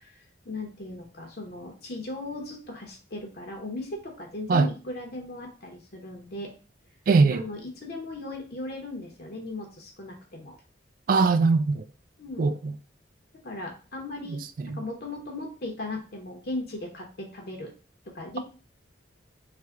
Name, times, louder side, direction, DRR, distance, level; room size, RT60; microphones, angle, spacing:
voice 1, 0.0-6.5 7.3-10.6 12.2-12.6 13.4-17.7 18.0-18.4, left 2 dB, 55° left, 0.7 m, -37 dB
voice 2, 7.1-7.4 11.1-11.8 12.4-12.7 14.3-14.4 14.7-14.8, right 4 dB, 50° right, 0.3 m, -21 dB
3.3 x 2.1 x 3.6 m
head